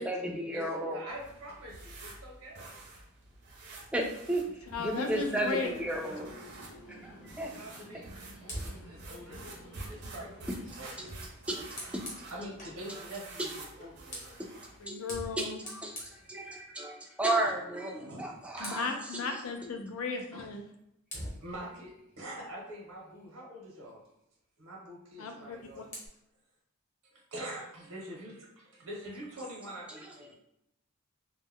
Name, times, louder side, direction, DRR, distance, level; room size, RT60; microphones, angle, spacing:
voice 1, 0.0-1.0 3.9-6.3 7.0-7.5 10.5-10.6 11.0-11.1 11.5-11.7 11.9-12.5 12.9-13.0 14.4-14.6 14.9-15.0 15.4-18.9 19.2-19.4 29.9-30.0 30.3-30.4, right 1 dB, 5° right, 0 dB, 0.3 m, -34 dB
voice 2, 0.9-3.0 7.5-10.5 10.8-11.4 12.3-14.4 18.0-18.7 20.3-20.5 21.4-24.0 24.6-25.8 27.0-30.3, right 1 dB, 80° right, -2 dB, 0.8 m, -45 dB
sound 1, 1.1-14.9, right 2 dB, 50° right, 0.6 m, -49 dB
sound 2, 4.6-12.6, equal, 60° left, 0.8 m, -53 dB
voice 3, 4.7-5.7 14.8-15.6 18.6-20.6 25.2-25.9, left 4 dB, 80° left, 4 dB, 0.5 m, -35 dB
Fire, 8.4-12.8 13.7-17.0 17.3-17.6 17.9-19.0 20.4-20.6 21.1-23.4 25.3-26.1, equal, 35° left, 0.9 m, -47 dB
2.2 x 2.1 x 3.5 m, 0.81 s
head